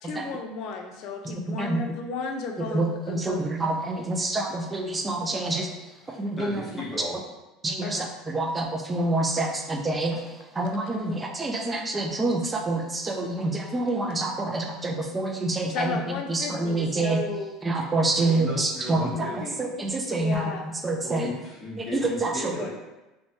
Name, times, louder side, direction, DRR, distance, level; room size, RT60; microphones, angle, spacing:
voice 1, 0.0-3.8 7.8-8.1 11.1-11.2 15.7-17.5 20.2-20.7, left 4 dB, 60° left, 4 dB, 0.4 m, -34 dB
voice 2, 1.2-1.8 2.7-5.7 6.1-6.6 7.6-16.0 16.3-17.2 17.6-20.6 20.8-21.3 21.8-22.5, right 2 dB, 15° right, 2 dB, 0.4 m, -27 dB
voice 3, 6.0-7.2 18.2-19.5 21.0-22.7, left 1 dB, 15° left, -6 dB, 0.9 m, -35 dB
2.9 x 2.2 x 2.7 m, 1.0 s
supercardioid pair, 115°, 0 cm